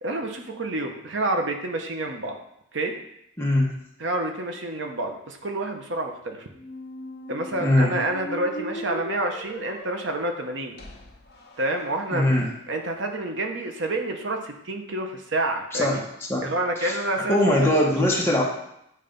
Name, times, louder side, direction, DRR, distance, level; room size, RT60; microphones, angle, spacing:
voice 1, 0.0-2.4 2.7-3.0 4.0-6.5 7.3-10.8 11.6-12.4 12.7-16.0 16.4-17.8, right 2 dB, 60° right, 3 dB, 0.9 m, -28 dB
voice 2, 3.4-3.7 7.6-7.9 12.1-12.5 15.7-16.0 16.3-16.5 16.8-18.4, left 1 dB, 10° left, -2 dB, 1.0 m, -21 dB
sound 1, 6.5-12.4, left 1 dB, 50° left, 1.0 m, -39 dB
8.7 x 3.2 x 5.1 m, 0.75 s
head